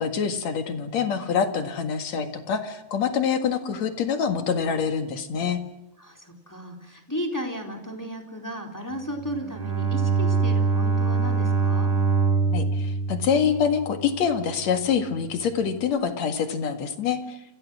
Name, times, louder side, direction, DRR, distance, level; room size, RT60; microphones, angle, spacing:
voice 1, 0.0-5.6 12.4-17.4, left 7 dB, 50° left, 7 dB, 2.3 m, -25 dB
voice 2, 6.0-11.9, equal, 5° left, 2 dB, 3.1 m, -34 dB
Bowed string instrument, 9.2-14.4, right 4 dB, 45° right, 6.9 m, -24 dB
28.0 x 27.5 x 6.3 m, 0.90 s
omnidirectional pair, 5.1 m